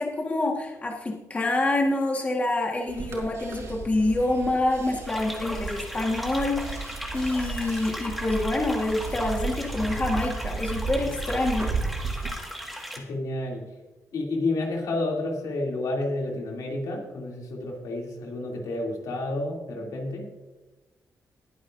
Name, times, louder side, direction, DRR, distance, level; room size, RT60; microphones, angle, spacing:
voice 1, 0.0-11.7, left 2 dB, 25° left, 0 dB, 1.5 m, -27 dB
sound 1, 2.9-12.3, right 4 dB, 55° right, 4.7 m, -34 dB
sound 2, 5.1-13.0, equal, ahead, 1.8 m, -37 dB
voice 2, 13.0-13.6 14.1-20.3, left 2 dB, 80° left, -1 dB, 2.8 m, -30 dB
20.5 x 9.3 x 2.6 m, 1.1 s
wide cardioid pair, 140°, 6 cm